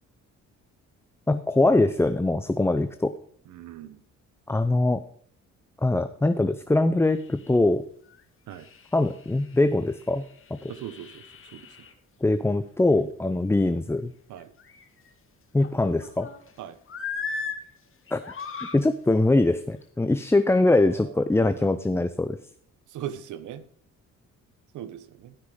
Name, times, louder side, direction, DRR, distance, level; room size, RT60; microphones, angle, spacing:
voice 1, 1.3-3.1 4.5-5.0 5.8-7.8 8.9-10.2 10.6-10.7 12.2-14.1 15.5-16.3 18.1-18.2 18.7-22.4, left 2 dB, 10° left, 10 dB, 0.5 m, -22 dB
voice 2, 3.5-4.0 8.5-8.7 10.7-11.9 14.3-14.5 16.6-16.8 20.6-21.2 21.6-21.7 22.9-23.6 24.7-25.3, right 10 dB, 80° right, 14 dB, 1.0 m, -40 dB
sound 1, 7.1-7.6 8.1-8.2 8.5-11.9 14.4-15.1 15.6-16.5 16.9-17.6 18.1-18.8 19.6-19.8, left 5 dB, 45° left, 1.5 m, -38 dB
12.5 x 6.1 x 4.9 m, 0.62 s
cardioid pair, 90°, 30 cm